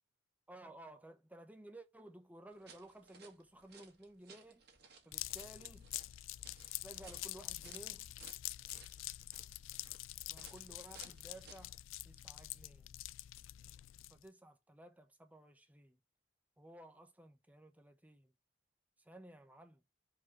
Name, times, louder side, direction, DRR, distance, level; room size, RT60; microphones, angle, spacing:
voice 1, 0.5-4.6 5.0-5.9 6.8-8.1 10.3-11.8 12.0-12.9 14.1-16.0 16.6-18.3 19.0-19.8, right 1 dB, 10° right, 0.9 m, -56 dB
sound 1, 2.5-11.8, right 5 dB, 55° right, 1.9 m, -61 dB
sound 2, 5.1-14.3, left 16 dB, 85° left, 0.3 m, -46 dB
4.8 x 4.5 x 6.0 m
head